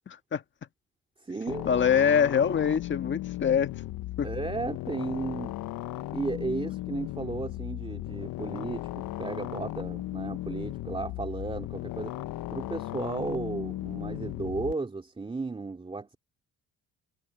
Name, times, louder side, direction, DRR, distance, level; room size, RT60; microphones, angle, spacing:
voice 1, 0.1-0.4 1.6-3.7 4.2-4.3, left 7 dB, 35° left, 1.6 m, -24 dB
voice 2, 1.2-1.7 4.2-5.5 6.1-12.2 12.5-16.2, right 3 dB, 15° right, 2.7 m, -34 dB
sound 1, 1.5-14.7, left 15 dB, 70° left, 0.9 m, -36 dB
cardioid pair, 135°, 35 cm